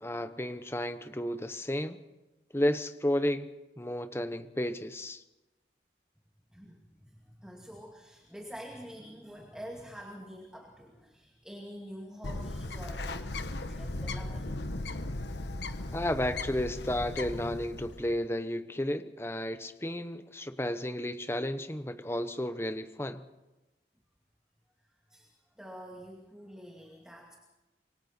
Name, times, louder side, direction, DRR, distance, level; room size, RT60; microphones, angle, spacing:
voice 1, 0.0-2.0 2.5-3.5 3.8-5.2 15.9-23.2, left 1 dB, 15° left, 10 dB, 0.9 m, -32 dB
voice 2, 6.5-14.6 25.1-27.5, equal, 5° right, 0 dB, 2.4 m, -47 dB
Bird, 12.2-18.2, left 2 dB, 80° left, 1.3 m, -37 dB
27.0 x 24.0 x 4.4 m, 1.0 s
head